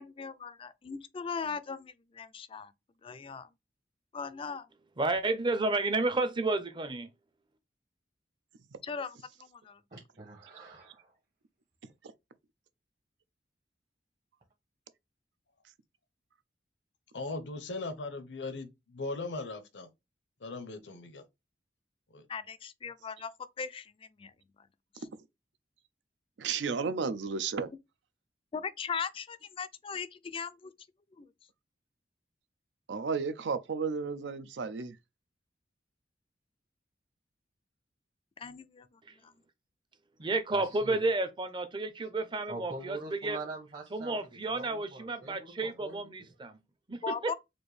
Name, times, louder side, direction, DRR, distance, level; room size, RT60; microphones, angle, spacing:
voice 1, 0.0-2.7 3.0-3.5 4.1-4.7 8.8-9.8 22.3-24.3 24.6-24.7 25.0-25.1 28.5-30.7 31.2-31.3 38.4-39.3 47.0-47.3, left 6 dB, 30° left, 0.4 m, -39 dB
voice 2, 5.0-7.1 40.2-43.4 43.9-46.6 46.9-47.0, right 2 dB, 25° right, 0.6 m, -31 dB
voice 3, 9.9-11.1 40.2-41.0 42.5-46.0, right 3 dB, 45° right, 1.1 m, -44 dB
voice 4, 17.1-19.9 20.4-21.2 22.1-22.2, left 3 dB, 80° left, 0.8 m, -39 dB
voice 5, 26.4-27.7 32.9-35.0, right 5 dB, 80° right, 0.5 m, -33 dB
4.3 x 2.6 x 3.2 m
head